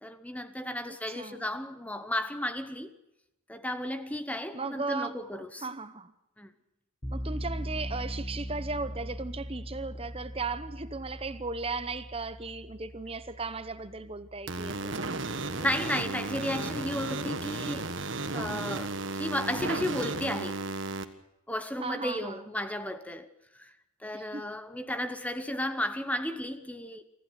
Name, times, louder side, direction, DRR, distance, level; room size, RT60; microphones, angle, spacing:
voice 1, 0.0-2.9 3.5-5.7 6.4-6.5 15.3-18.0 18.3-20.6 21.5-23.3 23.5-23.7 24.0-27.0, left 1 dB, 5° left, 0.8 m, -34 dB
voice 2, 1.1-1.4 4.5-5.2 5.6-6.1 7.1-15.2 18.3-18.7 21.8-22.4 24.1-24.5, right 3 dB, 25° right, 0.8 m, -36 dB
sound 1, 7.0-15.9, equal, 25° left, 2.6 m, -40 dB
sound 2, 14.5-21.0, right 3 dB, 55° right, 1.5 m, -34 dB
25.0 x 14.5 x 8.2 m
head